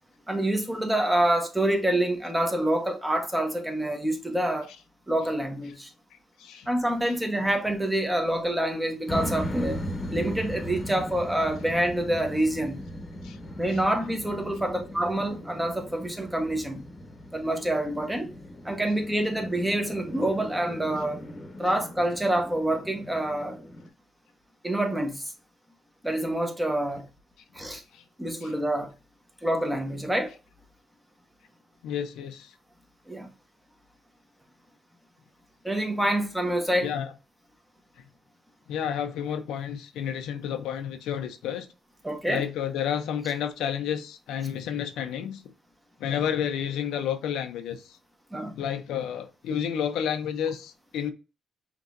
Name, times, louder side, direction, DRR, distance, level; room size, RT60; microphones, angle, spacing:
voice 1, 0.3-4.7 5.1-5.9 6.7-9.8 10.1-12.8 13.6-16.8 17.3-18.3 18.6-21.2 21.6-23.6 24.6-25.3 26.0-27.0 27.5-27.8 28.2-28.9 29.4-30.3 33.1-33.3 35.6-36.9 42.0-42.4 48.3-48.6, right 1 dB, 10° right, 1.1 m, -27 dB
sound 1, 9.1-23.9, equal, 30° left, 1.0 m, -38 dB
voice 2, 31.8-32.5 36.8-37.1 38.7-41.7 42.3-45.4 46.0-48.0 48.6-51.1, left 9 dB, 85° left, 0.6 m, -30 dB
5.3 x 3.0 x 2.6 m
cardioid pair, 90°, 0 cm